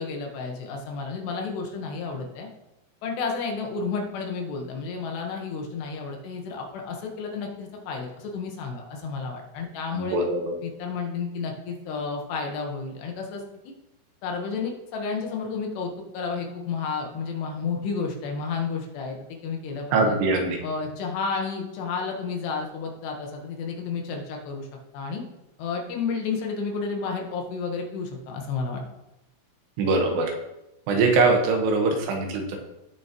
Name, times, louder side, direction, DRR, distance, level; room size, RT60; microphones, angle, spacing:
voice 1, 0.0-2.5 3.0-10.2 10.6-13.7 14.2-19.2 19.4-20.2 20.6-24.7 24.9-25.2 25.6-28.8, left 5 dB, 75° left, 1 dB, 3.3 m, -31 dB
voice 2, 9.9-10.6 19.9-20.6 29.8-30.3 30.9-32.6, right 3 dB, 80° right, 2 dB, 3.4 m, -22 dB
16.5 x 6.3 x 3.0 m, 0.93 s
omnidirectional pair, 5.0 m